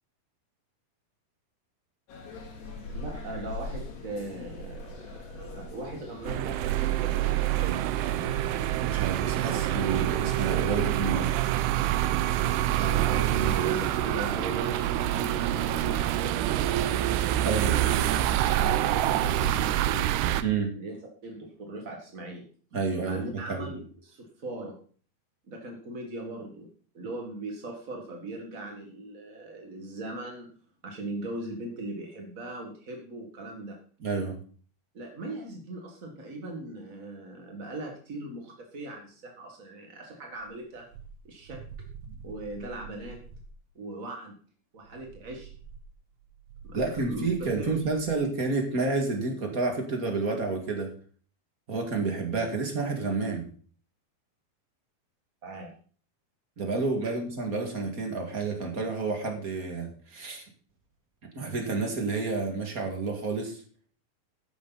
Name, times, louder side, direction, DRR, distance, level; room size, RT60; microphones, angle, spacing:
sound 1, 2.1-19.6, left 3 dB, 85° left, 4.9 m, -43 dB
voice 1, 2.9-8.1 12.8-16.8 17.3-20.4 20.8-22.4 23.0-24.8 25.5-26.7 26.9-30.5 30.8-33.8 34.9-40.9 41.2-41.6 42.2-43.2 43.7-44.4 44.7-45.5 46.6-47.8 55.4-55.7, right 2 dB, 50° right, 1 dB, 1.0 m, -39 dB
sound 2, 6.2-20.4, right 13 dB, 90° right, 2.7 m, -26 dB
voice 2, 8.8-11.4 17.4-17.7 20.4-20.7 22.7-23.7 34.0-34.4 46.7-50.9 51.7-53.4 56.6-60.5 61.3-63.6, right 4 dB, 30° right, 3 dB, 1.7 m, -30 dB
sound 3, 40.4-43.6 44.8-48.3, right 6 dB, 70° right, 3.0 m, -47 dB
13.0 x 10.0 x 4.1 m, 0.43 s
omnidirectional pair, 4.6 m